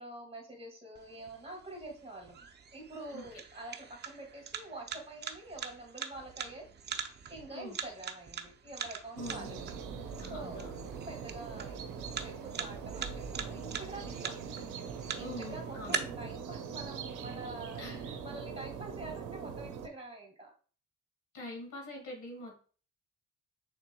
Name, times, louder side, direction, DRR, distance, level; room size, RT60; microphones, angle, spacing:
voice 1, 0.0-2.4 2.7-6.7 7.3-9.6 10.3-10.7 11.1-14.4 15.2-17.9 18.2-20.5, right 2 dB, 20° right, 0 dB, 1.9 m, -46 dB
sound 1, 1.0-16.0, right 7 dB, 35° right, 0.6 m, -43 dB
voice 2, 9.1-9.7 10.2-10.9 15.2-16.0 17.8-18.2 21.3-22.6, left 1 dB, 80° left, 0 dB, 1.9 m, -44 dB
sound 2, 9.2-19.9, right 6 dB, 80° right, 0.6 m, -42 dB
5.9 x 3.7 x 2.2 m, 0.41 s
cardioid pair, 90°, 30 cm